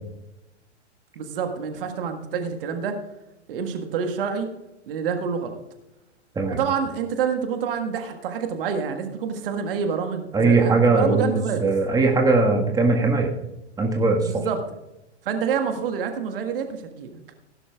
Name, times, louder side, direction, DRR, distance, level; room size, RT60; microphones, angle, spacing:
voice 1, 1.1-3.0 3.5-4.5 4.9-5.6 6.5-11.7 14.2-14.6 15.2-17.2, right 6 dB, 50° right, 6 dB, 1.6 m, -27 dB
voice 2, 10.3-13.3 13.8-14.5, right 3 dB, 10° right, 2 dB, 1.6 m, -20 dB
16.5 x 11.5 x 2.4 m, 0.94 s
figure-of-eight pair, 100°, 35 cm